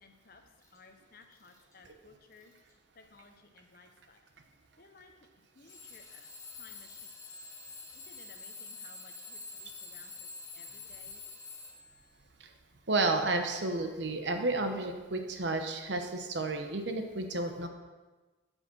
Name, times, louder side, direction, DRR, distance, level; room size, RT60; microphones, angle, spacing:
voice 1, 0.0-0.4 0.7-2.5 3.0-4.2 4.8-5.1 5.6-6.3 6.6-7.1 8.1-11.2, left 3 dB, 50° left, 6 dB, 0.8 m, -58 dB
Alarm / Clock, 0.6-0.8 1.3-1.7 2.3-2.7 3.6-3.7 5.7-12.1, left 4 dB, 15° left, 1.3 m, -47 dB
voice 2, 12.9-17.7, right 2 dB, 65° right, 5 dB, 0.9 m, -31 dB
8.3 x 5.5 x 5.9 m, 1.2 s
head